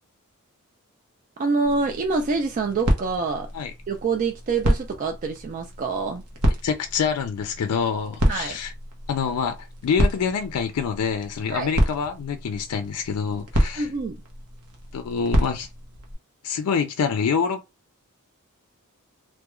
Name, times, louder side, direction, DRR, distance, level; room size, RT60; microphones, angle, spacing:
voice 1, 1.4-3.5 3.9-6.2 8.3-8.6 11.5-11.7 13.6-14.2, right 4 dB, 35° right, 0.3 m, -26 dB
sound 1, 1.6-16.1, equal, 85° right, 0.7 m, -28 dB
voice 2, 6.6-8.7 9.1-13.9 14.9-15.7 16.4-17.6, left 6 dB, 85° left, 0.4 m, -26 dB
2.3 x 2.1 x 2.9 m
head